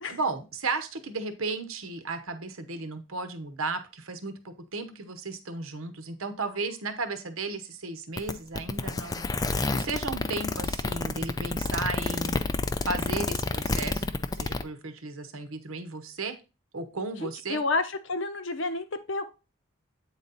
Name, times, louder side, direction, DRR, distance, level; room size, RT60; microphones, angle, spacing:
voice 1, 0.1-12.3 12.8-14.0 14.3-16.4 16.7-17.6, right 3 dB, 85° right, 10 dB, 1.0 m, -34 dB
sound 1, 8.2-14.6, left 3 dB, 20° left, 0.3 m, -29 dB
voice 2, 17.2-19.3, left 3 dB, 65° left, 10 dB, 0.7 m, -30 dB
8.5 x 4.1 x 4.0 m, 0.30 s
head